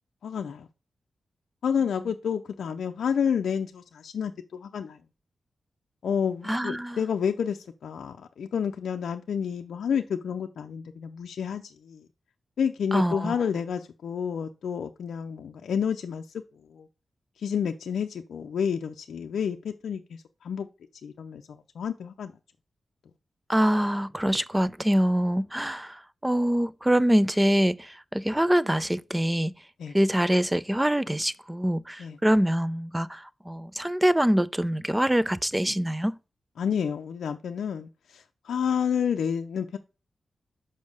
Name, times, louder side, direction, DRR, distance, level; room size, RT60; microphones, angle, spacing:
voice 1, 0.2-0.7 1.6-5.0 6.0-12.0 12.6-16.2 16.7-16.9 17.4-20.7 21.0-22.3 29.8-29.9 32.0-32.2 36.6-39.8, left 7 dB, 85° left, 0.5 m, -30 dB
voice 2, 6.4-7.0 12.9-13.3 23.5-29.5 29.9-36.1, equal, 15° right, 0.6 m, -24 dB
5.6 x 5.2 x 6.5 m
cardioid pair, 45°, 0 cm